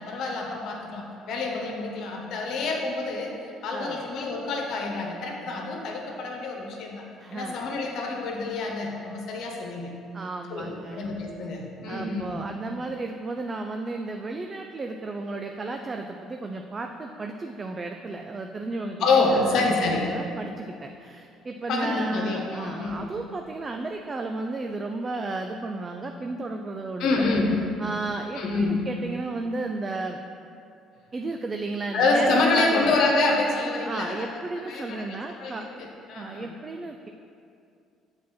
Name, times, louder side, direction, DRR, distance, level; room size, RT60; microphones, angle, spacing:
voice 1, 0.0-3.4 3.6-7.0 7.3-9.9 10.5-12.5 19.0-20.1 21.7-23.0 27.0-27.6 28.4-28.9 31.9-34.3 34.5-36.5, left 3 dB, 70° left, 0 dB, 1.3 m, -27 dB
voice 2, 3.7-4.1 7.2-7.6 10.1-11.0 11.9-27.3 27.8-30.2 31.1-33.0 33.9-35.7 36.1-37.1, right 2 dB, 30° right, 4 dB, 0.4 m, -33 dB
7.3 x 4.4 x 5.9 m, 2.5 s
supercardioid pair, 85°, 0 cm